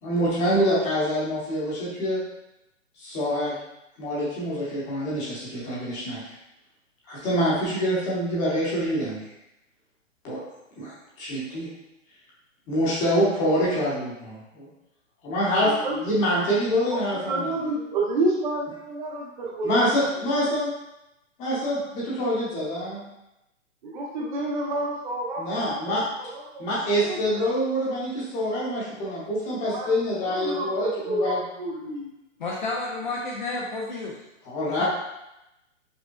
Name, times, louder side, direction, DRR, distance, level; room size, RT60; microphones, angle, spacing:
voice 1, 0.0-2.2 3.0-3.6 4.0-6.2 7.1-9.2 10.2-10.4 10.8-10.9 11.2-11.7 12.7-14.7 15.2-15.7 16.0-17.5 19.6-20.7 21.4-23.1 25.4-26.0 26.6-31.4 34.4-34.8, equal, 20° left, -7 dB, 0.8 m, -25 dB
voice 2, 15.6-16.0 16.9-19.9 23.8-26.6 27.0-27.5 29.7-29.9 30.2-32.1, right 2 dB, 40° right, -2 dB, 0.6 m, -29 dB
voice 3, 32.4-34.2, left 2 dB, 40° left, -2 dB, 0.4 m, -30 dB
5.2 x 2.1 x 2.3 m, 0.90 s
hypercardioid pair, 150°, 38 cm